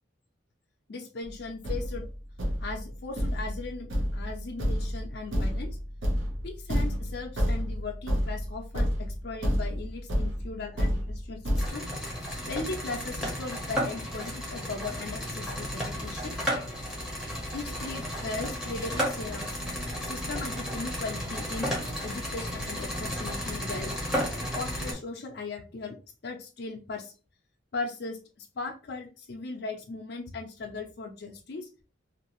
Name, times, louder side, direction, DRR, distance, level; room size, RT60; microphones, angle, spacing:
voice 1, 0.9-2.0 2.6-5.7 6.4-11.9 12.4-16.4 17.5-19.6 20.0-21.7 22.0-23.9 24.5-26.0 26.2-27.1 27.7-31.7, left 3 dB, 55° left, 1 dB, 0.4 m, -38 dB
Thump thud, 1.2-1.3 1.6-11.7, equal, 80° right, 0.8 m, -30 dB
sound 1, 11.5-24.9, equal, 5° right, 0.8 m, -33 dB
2.7 x 2.5 x 2.9 m, 0.34 s
head